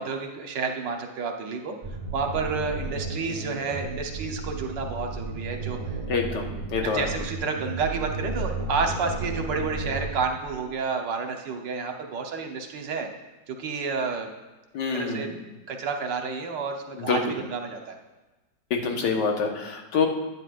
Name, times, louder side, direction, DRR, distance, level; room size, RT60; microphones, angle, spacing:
voice 1, 0.0-1.7 2.1-5.8 6.8-13.1 13.5-14.3 14.9-15.3 15.7-18.0, right 5 dB, 80° right, 3 dB, 1.7 m, -30 dB
sound 1, 1.8-10.7, right 3 dB, 25° right, 0.7 m, -34 dB
voice 2, 6.1-7.1 14.7-15.3 17.0-17.4 18.7-20.1, left 5 dB, 75° left, 2 dB, 1.9 m, -26 dB
10.0 x 9.6 x 2.5 m, 1.1 s
omnidirectional pair, 1.9 m